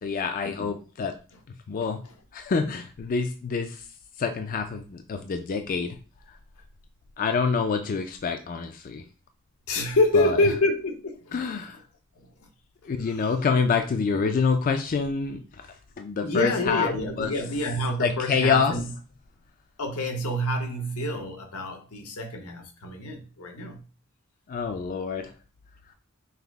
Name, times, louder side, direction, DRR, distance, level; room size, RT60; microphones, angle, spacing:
voice 1, 0.0-1.1 1.7-2.0 2.3-3.8 4.2-6.0 7.2-9.0 10.1-10.4 11.3-11.8 12.8-15.4 16.0-16.9 17.2-17.3 18.0-18.7 24.5-25.3, left 5 dB, 40° left, 0.3 m, -26 dB
voice 2, 1.8-2.1 9.7-11.6 13.1-13.3 14.1-14.2 16.2-18.9 19.8-23.8, left 1 dB, 90° left, 0.9 m, -27 dB
5.6 x 2.0 x 3.4 m
head